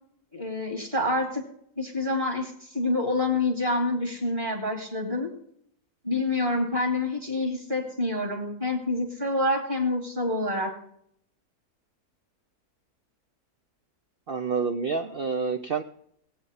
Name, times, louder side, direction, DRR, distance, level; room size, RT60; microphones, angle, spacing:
voice 1, 0.3-1.4 1.8-5.3 6.0-10.7, left 2 dB, 30° right, 3 dB, 3.1 m, -27 dB
voice 2, 14.3-15.8, right 5 dB, 55° right, 6 dB, 0.6 m, -28 dB
17.5 x 8.8 x 5.5 m, 0.68 s
omnidirectional pair, 1.7 m